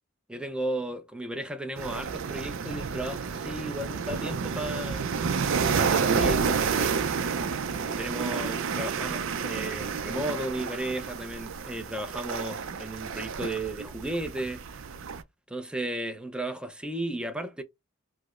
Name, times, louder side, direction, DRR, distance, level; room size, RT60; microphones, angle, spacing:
voice 1, 0.3-5.1 5.7-7.0 7.8-14.6 15.5-17.6, right 1 dB, 5° right, 0.5 m, -34 dB
sound 1, 1.8-15.2, right 6 dB, 65° right, 0.5 m, -30 dB
4.7 x 2.0 x 2.4 m
head